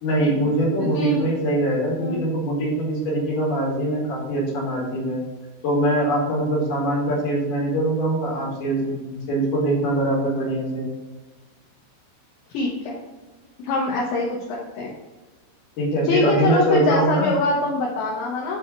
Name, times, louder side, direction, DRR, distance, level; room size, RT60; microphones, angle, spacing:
voice 1, 0.0-5.2 5.6-10.9 15.8-17.3, right 1 dB, 50° left, -5 dB, 3.4 m, -23 dB
voice 2, 0.8-1.3 2.0-2.3 12.5-13.0 13.6-14.9 16.1-18.6, left 2 dB, 70° left, -4 dB, 3.1 m, -24 dB
7.9 x 4.9 x 4.0 m, 1.2 s
omnidirectional pair, 5.8 m